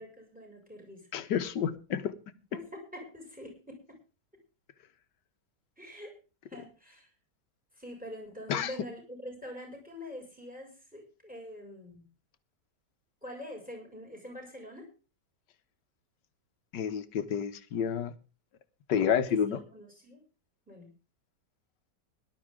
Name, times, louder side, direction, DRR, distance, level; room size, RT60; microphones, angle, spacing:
voice 1, 0.0-1.1 2.5-4.0 5.8-6.2 6.5-7.1 7.7-12.1 13.2-14.9 19.3-20.2 20.7-20.9, left 1 dB, 5° right, 2 dB, 5.6 m, -45 dB
voice 2, 1.1-2.1 8.5-8.7 16.7-18.1 18.9-19.6, left 8 dB, 80° left, 11 dB, 1.7 m, -29 dB
18.0 x 11.5 x 3.7 m, 0.32 s
omnidirectional pair, 1.8 m